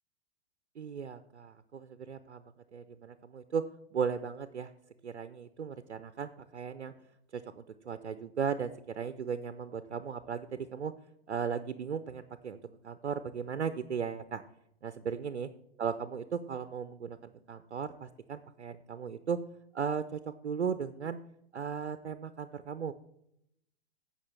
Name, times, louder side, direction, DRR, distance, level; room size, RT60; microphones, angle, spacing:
voice 1, 0.8-2.4 2.7-3.6 3.9-4.7 5.0-6.9 7.3-10.9 11.3-12.6 12.8-14.4 14.8-15.5 15.8-19.4 19.7-21.2 21.5-22.9, right 6 dB, 85° right, 11 dB, 0.6 m, -36 dB
15.5 x 5.6 x 3.2 m, 0.77 s
figure-of-eight pair, 105°, 33 cm